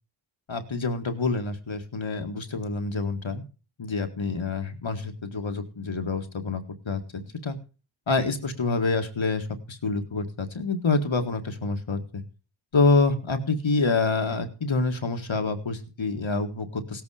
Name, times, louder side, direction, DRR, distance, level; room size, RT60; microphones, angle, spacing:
voice 1, 0.5-3.4 3.8-7.6 8.1-12.2 12.7-17.0, left 3 dB, 65° left, 6 dB, 1.9 m, -27 dB
17.0 x 8.5 x 4.9 m, 0.35 s
wide cardioid pair, 50°, 50 cm